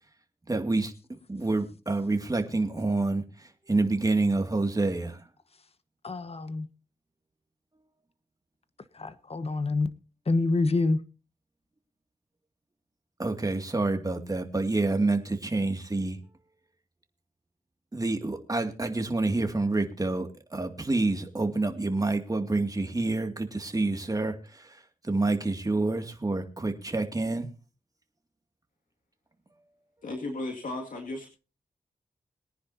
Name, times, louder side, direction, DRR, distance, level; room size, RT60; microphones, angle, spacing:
voice 1, 0.5-0.9 1.3-5.2 13.2-16.2 17.9-27.5, right 2 dB, 25° right, 2.3 m, -28 dB
voice 2, 6.0-6.7 9.0-9.9 10.3-11.0, left 3 dB, 45° left, 1.2 m, -26 dB
voice 3, 30.0-31.3, left 2 dB, 70° left, 2.3 m, -35 dB
22.5 x 10.0 x 2.8 m
cardioid pair, 70°, 14 cm